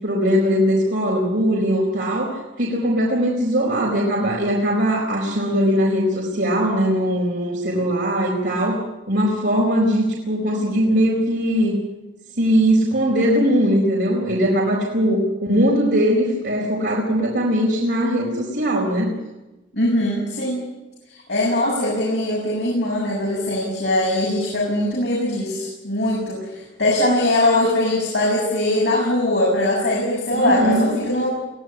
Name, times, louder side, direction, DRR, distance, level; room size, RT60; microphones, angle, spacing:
voice 1, 0.0-8.8 9.1-11.8 12.4-19.1 30.3-31.0, equal, 60° right, -3 dB, 4.4 m, -20 dB
voice 2, 19.7-20.6 21.3-31.3, left 1 dB, 60° left, -4 dB, 7.2 m, -21 dB
23.0 x 16.0 x 9.9 m, 1.1 s
head